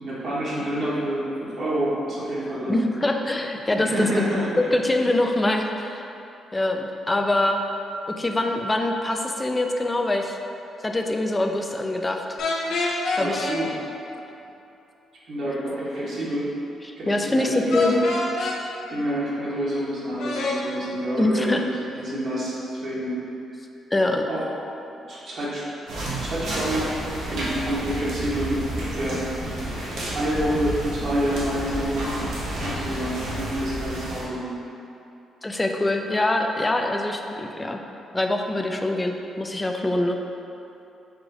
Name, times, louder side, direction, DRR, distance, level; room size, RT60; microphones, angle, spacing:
voice 1, 0.0-2.8 3.7-4.7 5.0-5.1 13.1-13.7 15.3-16.5 17.0-18.0 18.9-23.2 24.3-24.5 25.1-25.6 26.1-26.9 27.3-28.6 28.9-29.2 29.8-32.1 32.6-34.5, right 1 dB, 60° right, -8 dB, 1.1 m, -28 dB
voice 2, 2.7-4.0 4.7-6.0 6.5-7.6 8.2-10.4 10.8-12.4 13.2-13.5 16.9-18.0 18.4-18.5 21.2-21.6 23.9-24.3 35.4-37.8 38.1-40.2, left 1 dB, 20° left, 3 dB, 0.4 m, -24 dB
sound 1, 12.4-13.6 17.7-18.6 20.2-20.6, left 3 dB, 80° left, 0.6 m, -26 dB
sound 2, 25.9-34.2, right 1 dB, 80° right, 0.9 m, -30 dB
4.8 x 2.5 x 3.8 m, 2.8 s
cardioid pair, 80°, 0 cm